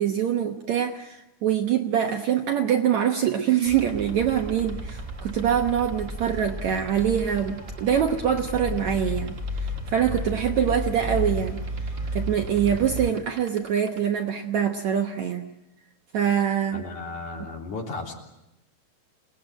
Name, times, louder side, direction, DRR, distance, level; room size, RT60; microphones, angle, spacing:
voice 1, 0.0-15.4 16.1-16.8, right 9 dB, 65° right, 4 dB, 2.0 m, -24 dB
sound 1, 3.7-13.1, equal, 10° right, 2.4 m, -33 dB
sound 2, 3.7-14.0, right 7 dB, 45° right, 2.2 m, -46 dB
voice 2, 16.7-18.1, left 3 dB, 55° left, 1 dB, 4.6 m, -34 dB
28.0 x 19.0 x 9.0 m, 0.90 s
omnidirectional pair, 4.3 m